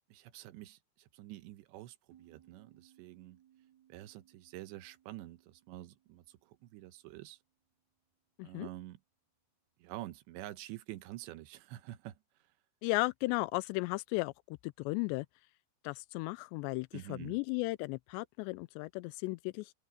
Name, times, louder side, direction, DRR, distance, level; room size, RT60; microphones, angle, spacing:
voice 1, 0.1-3.4 3.9-7.4 8.4-9.0 9.8-12.2 16.9-17.4, right 15 dB, 90° right, 3.2 m, -48 dB
sound 1, 2.1-7.4, right 11 dB, 55° right, 6.0 m, -67 dB
voice 2, 12.8-15.3 15.8-19.7, left 23 dB, 85° left, 2.7 m, -35 dB
open air
omnidirectional pair, 5.0 m